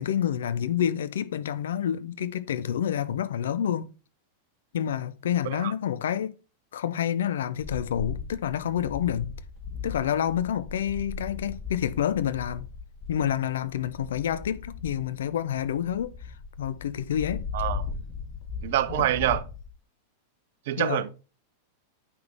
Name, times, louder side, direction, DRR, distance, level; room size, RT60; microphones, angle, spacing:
voice 1, 0.0-3.9 4.7-6.4 6.7-9.3 9.8-12.7 13.1-17.4 18.9-19.1 20.8-21.0, left 9 dB, 60° left, 0.5 m, -28 dB
sound 1, 7.6-19.7, left 5 dB, 25° left, 2.7 m, -38 dB
voice 2, 18.6-19.4 20.7-21.1, right 13 dB, 55° right, 0.5 m, -25 dB
8.6 x 5.7 x 3.3 m
figure-of-eight pair, 90°, 0 cm